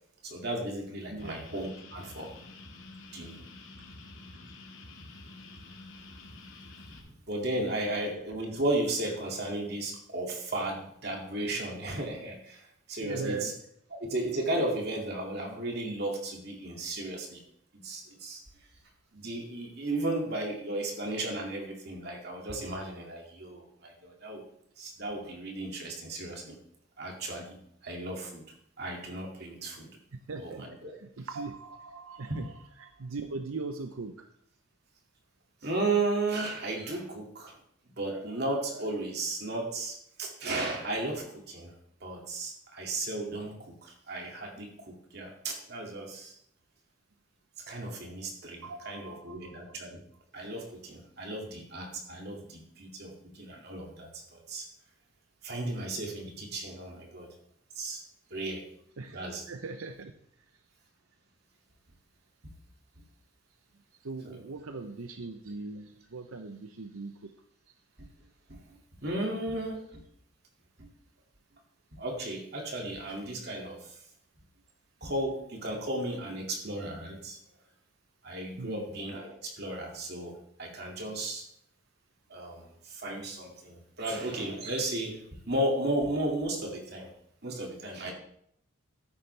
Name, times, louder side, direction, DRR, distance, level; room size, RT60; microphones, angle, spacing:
voice 1, 0.2-2.3 3.1-3.4 7.0-13.5 14.0-17.4 17.8-18.4 19.1-24.4 24.8-26.6 27.0-27.6 27.8-28.4 28.8-29.9 30.4-30.9 32.3-32.4 35.6-37.6 37.9-41.7 42.0-46.3 47.6-50.0 50.3-54.7 55.4-57.3 57.8-58.0 58.3-58.6 59.1-59.4 68.0-68.1 68.5-70.0 70.8-70.9 72.0-74.0 75.0-77.4 78.2-81.5 82.3-85.2 85.5-87.1 87.4-88.1, right 2 dB, 50° right, 1 dB, 2.3 m, -34 dB
sound 1, 1.2-7.0, left 2 dB, 70° left, 2.0 m, -48 dB
voice 2, 13.0-13.6 30.1-34.3 48.6-49.7 59.0-60.1 63.9-67.3 78.6-78.9, right 3 dB, 85° right, 7 dB, 0.7 m, -40 dB
13.0 x 10.0 x 3.3 m, 0.71 s
head